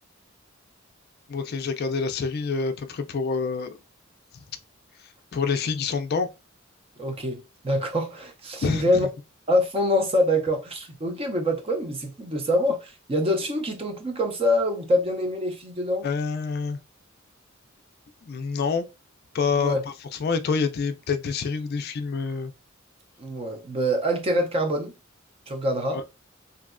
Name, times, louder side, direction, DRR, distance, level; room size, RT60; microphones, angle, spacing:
voice 1, 1.3-3.8 4.3-4.4 5.0-6.3 8.6-9.1 16.0-16.8 18.3-18.9 19.3-22.5 25.9-26.0, left 5 dB, 50° left, 0.4 m, -27 dB
voice 2, 7.0-9.1 9.5-16.1 19.5-19.8 23.2-24.9 25.5-26.0, equal, 30° right, 0.5 m, -25 dB
3.1 x 2.6 x 2.5 m
head